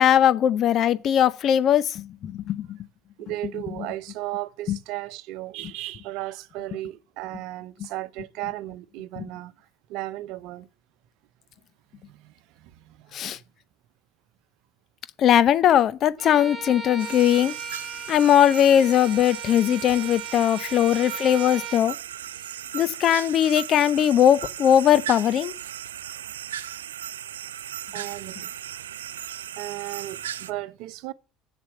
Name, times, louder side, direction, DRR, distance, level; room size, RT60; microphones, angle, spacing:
voice 1, 0.0-2.8 4.7-4.8 9.2-9.3 13.1-13.4 15.2-17.5 18.1-22.0 22.7-25.5, left 10 dB, 50° left, 0.8 m, -20 dB
voice 2, 3.2-9.5 9.9-10.7 12.0-13.2 20.3-20.4 27.9-28.5 29.6-31.1, right 16 dB, 65° right, 0.8 m, -35 dB
Bowed string instrument, 16.2-21.9, right 5 dB, 30° right, 3.2 m, -37 dB
sound 1, 17.0-30.5, right 11 dB, 85° right, 0.4 m, -37 dB
8.1 x 7.1 x 7.8 m
hypercardioid pair, 65°, 0 cm